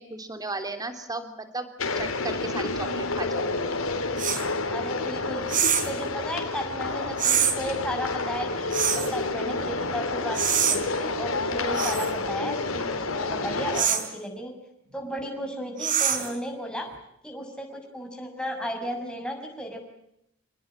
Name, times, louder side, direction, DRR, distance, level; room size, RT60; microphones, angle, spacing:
voice 1, 0.0-1.7 1.9-3.6, right 2 dB, 20° right, 8 dB, 3.3 m, -35 dB
sound 1, 1.8-13.8, left 3 dB, 85° left, 3.8 m, -29 dB
sound 2, 4.2-4.4 5.5-6.0 7.2-7.6 8.7-9.1 10.3-10.8 11.7-12.1 13.7-14.1 15.8-16.4, right 8 dB, 40° right, 3.7 m, -24 dB
voice 2, 4.7-5.4 5.8-10.4 10.7-14.5 14.9-16.9 17.2-19.9, equal, 5° left, 2 dB, 6.8 m, -34 dB
29.0 x 19.5 x 8.9 m, 0.80 s
head